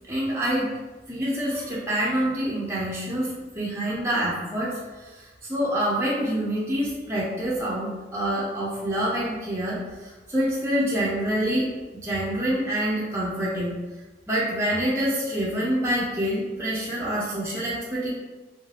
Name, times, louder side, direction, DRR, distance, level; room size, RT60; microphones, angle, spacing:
voice 1, 0.1-0.8 1.1-11.7 12.0-13.8 14.3-18.1, right 1 dB, 15° right, -6 dB, 0.5 m, -26 dB
2.6 x 2.3 x 3.1 m, 1.2 s
head